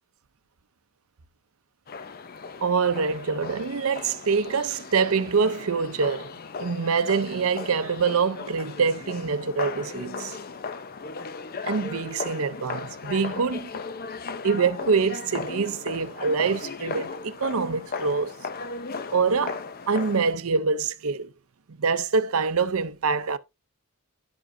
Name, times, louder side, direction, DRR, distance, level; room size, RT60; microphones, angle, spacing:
sound 1, 1.9-20.3, left 4 dB, 40° left, 0.6 m, -36 dB
voice 1, 2.6-6.3 6.6-10.4 11.6-13.7 14.4-18.3 19.1-19.6 19.9-21.3 21.7-23.4, right 5 dB, 65° right, 0.6 m, -25 dB
12.0 x 4.9 x 2.6 m
head